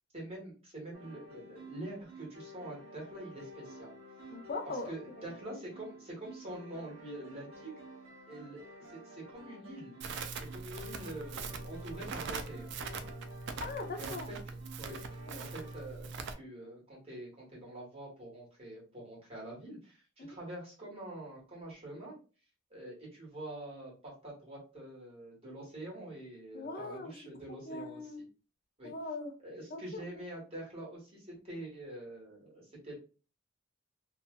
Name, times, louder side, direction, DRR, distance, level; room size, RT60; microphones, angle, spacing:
voice 1, 0.1-3.9 4.7-7.7 8.3-9.9 10.5-12.7 13.9-14.4 14.8-22.2 22.7-28.1 28.8-28.9 29.4-32.9, right 1 dB, 30° right, -4 dB, 1.4 m, -46 dB
sound 1, 0.9-15.9, equal, 80° right, 0.9 m, -52 dB
voice 2, 4.3-5.3 13.6-14.3 15.3-15.4 20.2-20.4 26.5-27.1 27.7-28.2 28.8-29.3 29.7-30.0, left 3 dB, 45° left, 3 dB, 0.6 m, -40 dB
Crackle, 10.0-16.3, right 4 dB, 55° right, 0.4 m, -42 dB
2.7 x 2.4 x 2.2 m, 0.35 s
head